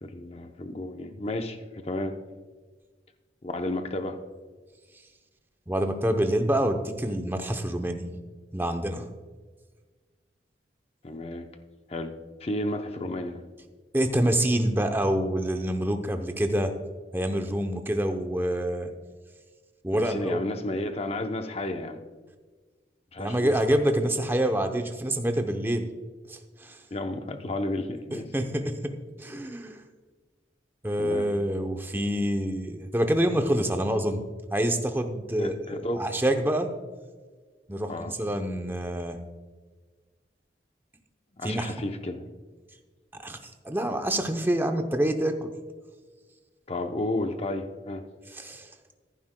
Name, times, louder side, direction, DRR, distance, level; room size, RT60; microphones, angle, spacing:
voice 1, 0.0-2.2 3.4-4.2 11.0-11.5 11.9-12.1 12.4-13.4 19.9-22.0 23.1-23.8 26.9-28.3 31.0-31.3 35.4-36.0 37.9-38.1 41.4-42.3 46.7-48.0, left 1 dB, 35° left, 6 dB, 0.7 m, -32 dB
voice 2, 5.7-8.1 8.5-9.1 13.9-16.7 17.1-18.9 19.8-20.4 23.2-25.9 26.3-26.8 28.1-28.9 29.2-29.8 30.8-34.2 34.5-36.7 37.7-39.2 41.4-41.7 43.2-43.4 43.6-45.5 48.4-48.7, right 1 dB, 10° right, 6 dB, 0.7 m, -27 dB
14.5 x 11.0 x 2.2 m, 1.4 s
head